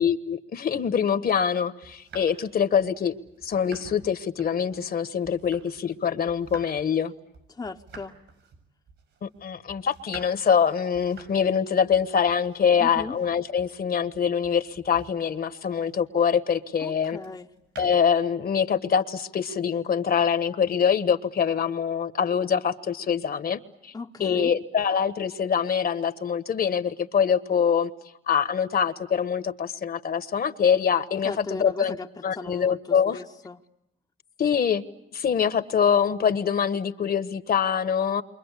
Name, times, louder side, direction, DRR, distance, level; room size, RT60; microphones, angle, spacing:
voice 1, 0.0-3.1 3.4-7.1 9.2-17.2 17.8-23.9 24.2-27.9 28.3-32.0 32.2-33.2 34.4-34.8 35.1-38.2, left 7 dB, 50° left, 1.4 m, -24 dB
sound 1, 1.8-6.0 6.3-16.2 17.2-18.3, right 4 dB, 75° right, 7.0 m, -50 dB
voice 2, 7.5-8.1 12.8-13.2 16.8-17.5 23.9-24.5 31.2-33.6, left 3 dB, 20° left, 0.9 m, -37 dB
28.5 x 24.5 x 8.3 m
cardioid pair, 90°, 20 cm